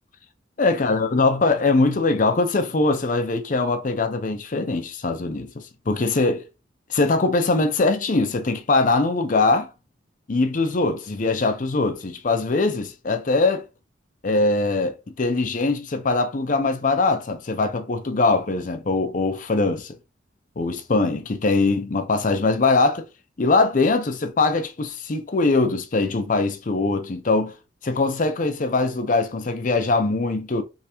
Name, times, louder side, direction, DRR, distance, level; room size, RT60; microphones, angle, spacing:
voice 1, 0.6-6.5 6.9-9.7 10.3-13.6 14.2-20.0 20.6-23.1 23.4-27.6 27.8-30.6, left 3 dB, 45° left, 0.6 m, -22 dB
3.6 x 3.2 x 2.9 m
head